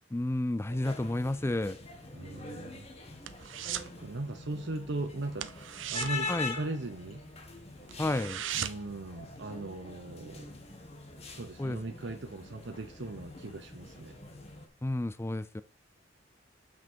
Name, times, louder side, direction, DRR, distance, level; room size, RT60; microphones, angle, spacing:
voice 1, 0.1-1.8 6.3-6.6 8.0-8.4 11.6-11.8 14.8-15.6, left 1 dB, 15° left, 0.4 m, -31 dB
sound 1, 0.7-14.7, left 3 dB, 35° left, 1.7 m, -44 dB
voice 2, 2.1-3.1 3.7-5.5 5.9-7.2 8.5-10.5 11.3-14.2, right 2 dB, 70° right, 0.9 m, -39 dB
sound 2, 2.4-4.0 4.3-4.6 4.8-5.0 5.3-7.2 7.6-7.7 7.9-9.0 9.4-9.5, right 11 dB, 90° right, 0.6 m, -38 dB
7.5 x 6.2 x 4.5 m
head